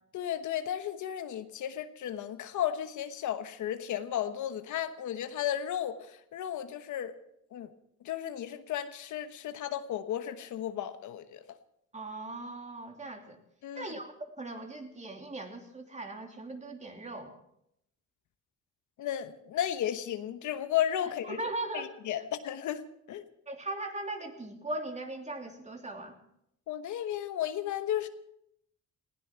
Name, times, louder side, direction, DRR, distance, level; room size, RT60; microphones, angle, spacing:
voice 1, 0.1-7.1 7.5-7.7 8.0-11.4 13.6-13.9 19.0-21.4 21.7-22.8 23.1-23.2 26.7-28.1, left 10 dB, 75° left, 10 dB, 1.2 m, -34 dB
voice 2, 11.9-13.4 13.7-17.3 21.0-21.9 23.5-26.2, right 2 dB, 25° right, 3 dB, 3.0 m, -39 dB
19.5 x 16.0 x 4.6 m, 0.77 s
cardioid pair, 90°, 30 cm